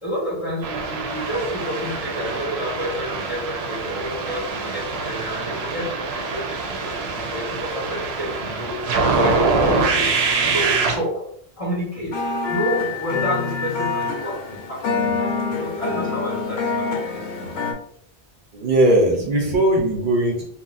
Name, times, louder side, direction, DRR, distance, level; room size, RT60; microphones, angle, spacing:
voice 1, 0.0-6.0 6.3-11.3 11.6-12.2 12.5-17.5, equal, 35° left, -5 dB, 1.1 m, -29 dB
sound 1, 0.6-11.0, right 4 dB, 90° right, 0.9 m, -24 dB
sound 2, 12.1-17.7, left 4 dB, 85° left, 0.9 m, -26 dB
voice 2, 18.5-20.4, right 1 dB, 60° right, 0 dB, 0.8 m, -18 dB
4.0 x 2.2 x 2.4 m, 0.65 s
omnidirectional pair, 1.0 m